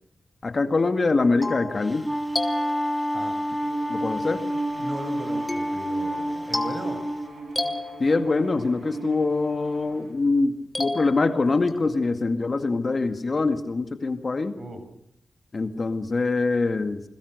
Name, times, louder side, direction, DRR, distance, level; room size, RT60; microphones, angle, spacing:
voice 1, 0.4-2.0 3.9-4.4 8.0-14.5 15.5-17.0, left 3 dB, 45° left, 7 dB, 2.1 m, -24 dB
sound 1, 0.9-3.4 5.5-8.7 10.7-11.9, left 2 dB, 20° left, 3.4 m, -34 dB
Wind instrument woodwind instrument, 1.8-7.3, equal, ahead, 1.8 m, -29 dB
Bowed string instrument, 3.6-10.2, right 2 dB, 85° right, 5.3 m, -38 dB
voice 2, 4.8-7.0 14.6-14.8, right 1 dB, 45° right, 8 dB, 7.0 m, -37 dB
29.0 x 22.5 x 6.6 m, 0.76 s
wide cardioid pair, 100°, 0 cm